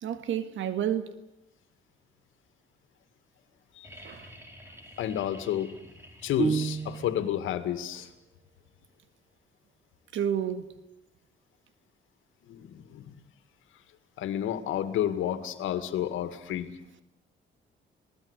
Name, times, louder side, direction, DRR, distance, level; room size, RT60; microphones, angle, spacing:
voice 1, 0.0-1.2 4.0-4.3 10.1-10.7, right 9 dB, 75° right, 2.0 m, -30 dB
sound 1, 3.8-7.6 9.3-9.4, equal, 10° right, 5.3 m, -50 dB
voice 2, 5.0-5.7 6.2-8.1 12.4-13.1 14.2-16.7, left 11 dB, 85° left, 2.1 m, -30 dB
sound 2, 6.4-7.4, right 6 dB, 40° right, 0.8 m, -30 dB
27.5 x 19.0 x 8.3 m
cardioid pair, 90°, 20 cm